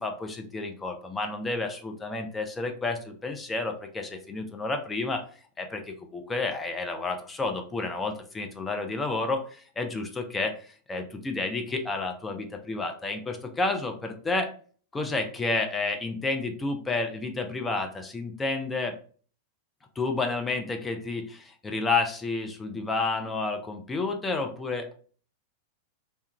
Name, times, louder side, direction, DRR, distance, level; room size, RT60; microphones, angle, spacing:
voice 1, 0.0-5.2 5.6-14.5 14.9-19.0 20.0-24.9, left 3 dB, 15° left, 4 dB, 0.4 m, -30 dB
2.3 x 2.1 x 2.8 m, 0.43 s
figure-of-eight pair, 90°, 0 cm